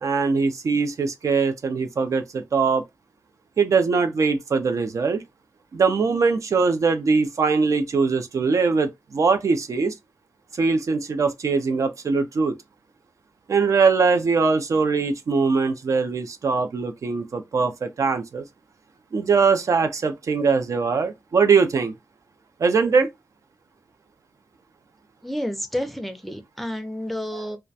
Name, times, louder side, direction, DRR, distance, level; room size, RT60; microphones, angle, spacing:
voice 1, 0.0-2.8 3.6-5.2 5.7-9.9 10.5-12.5 13.5-18.4 19.1-21.9 22.6-23.1 27.3-27.6, right 4 dB, 60° right, 0.4 m, -21 dB
voice 2, 25.2-27.6, equal, ahead, 0.5 m, -30 dB
2.3 x 2.1 x 2.6 m
cardioid pair, 75°, 6 cm